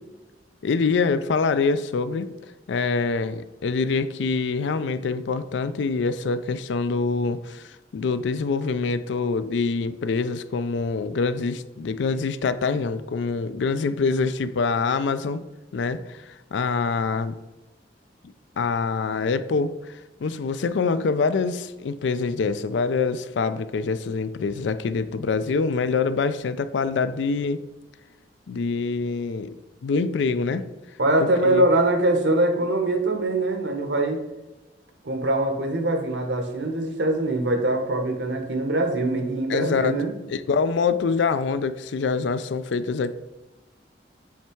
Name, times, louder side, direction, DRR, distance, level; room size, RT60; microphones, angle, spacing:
voice 1, 0.6-2.3 2.7-15.4 15.7-17.4 18.6-19.9 20.2-27.6 28.5-29.5 29.8-30.7 31.2-31.6 39.5-43.1, left 4 dB, 75° left, 13 dB, 0.4 m, -25 dB
voice 2, 31.0-34.2 35.0-40.1, right 1 dB, 75° right, 5 dB, 1.0 m, -23 dB
7.2 x 3.4 x 4.5 m, 1.1 s
head